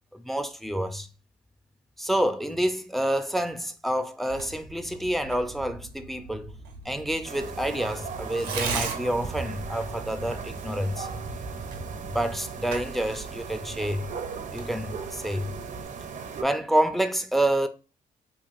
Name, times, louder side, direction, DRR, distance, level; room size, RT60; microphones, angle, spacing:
voice 1, 0.1-1.1 2.0-6.5 6.8-11.1 12.0-14.1 14.5-15.5 16.4-17.7, right 1 dB, ahead, 0.4 m, -28 dB
Tearing, 4.3-15.8, right 4 dB, 85° right, 0.8 m, -40 dB
sound 1, 7.2-16.4, right 5 dB, 55° right, 0.6 m, -37 dB
3.0 x 3.0 x 2.5 m
supercardioid pair, 60°, 16 cm